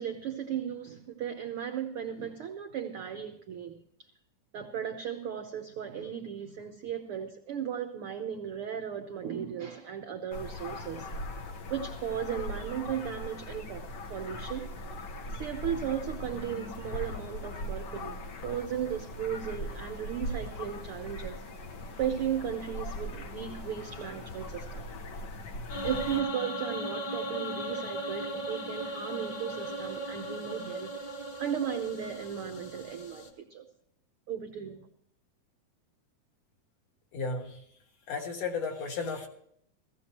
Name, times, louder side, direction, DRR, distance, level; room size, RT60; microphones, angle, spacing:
voice 1, 0.0-4.1 4.5-11.1 11.7-14.7 15.3-18.2 18.4-21.4 22.0-24.8 25.8-30.9 31.4-33.7 34.3-34.9, right 9 dB, 75° right, 6 dB, 1.2 m, -36 dB
sound 1, 10.3-26.2, left 1 dB, 80° left, 0.9 m, -40 dB
sound 2, 25.7-33.3, equal, 40° left, 2.1 m, -37 dB
voice 2, 37.1-37.6 38.1-39.3, left 4 dB, 55° left, 2 dB, 2.4 m, -34 dB
16.5 x 16.0 x 2.9 m, 0.68 s
omnidirectional pair, 3.6 m